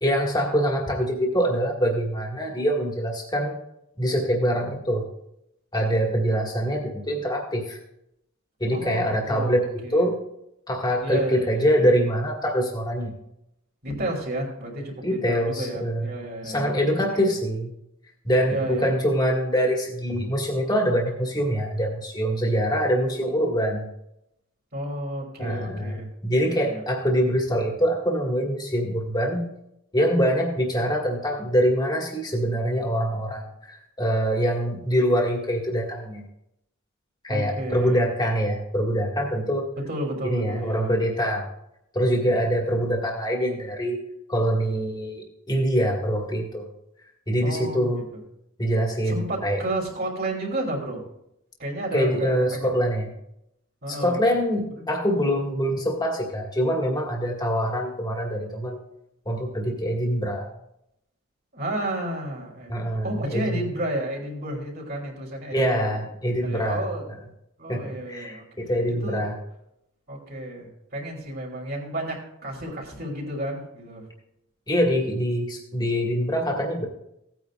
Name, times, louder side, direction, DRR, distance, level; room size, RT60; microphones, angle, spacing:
voice 1, 0.0-3.5 4.0-5.1 5.7-7.8 8.6-10.2 10.7-13.1 15.0-16.1 16.4-17.7 18.2-23.9 25.4-29.5 29.9-36.2 37.2-39.7 40.2-41.5 41.9-44.0 44.3-46.7 47.3-48.0 48.6-49.6 51.9-53.1 53.9-58.8 59.3-60.5 62.7-63.7 65.5-66.9 67.7-69.3 74.7-76.9, equal, 20° left, 0 dB, 2.0 m, -24 dB
voice 2, 8.7-10.0 11.0-11.9 13.8-17.2 18.5-18.9 24.7-26.0 26.4-26.8 37.3-38.1 39.9-41.1 47.4-48.0 49.0-51.0 51.6-52.8 53.8-54.2 54.8-54.9 61.5-65.9 66.4-67.0 67.6-68.4 69.0-69.3 70.1-74.1, right 1 dB, 50° right, -1 dB, 3.4 m, -32 dB
17.0 x 9.3 x 2.5 m, 0.80 s
head